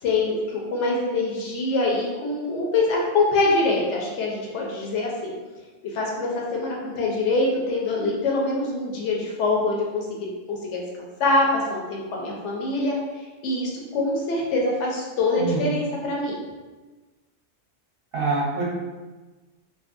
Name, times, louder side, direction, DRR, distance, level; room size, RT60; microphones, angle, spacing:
voice 1, 0.0-5.4 5.9-10.8 11.2-13.0 13.4-16.4, left 2 dB, 70° left, -2 dB, 0.9 m, -24 dB
voice 2, 18.1-18.6, right 3 dB, 55° right, -6 dB, 0.8 m, -25 dB
2.6 x 2.6 x 2.4 m, 1.2 s
omnidirectional pair, 1.3 m